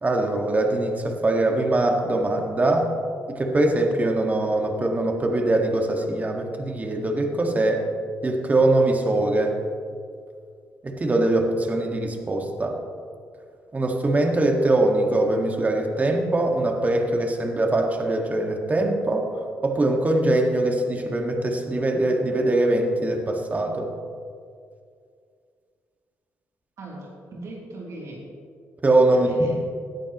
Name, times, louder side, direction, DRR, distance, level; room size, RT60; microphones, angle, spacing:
voice 1, 0.0-2.9 3.3-7.8 8.2-9.6 10.8-12.8 13.7-19.3 19.6-23.9 28.8-29.5, right 2 dB, 30° right, 2 dB, 1.7 m, -22 dB
voice 2, 26.8-28.2 29.1-29.5, right 2 dB, 70° right, -4 dB, 3.0 m, -39 dB
17.5 x 11.5 x 3.0 m, 2.2 s
cardioid pair, 80°, 6 cm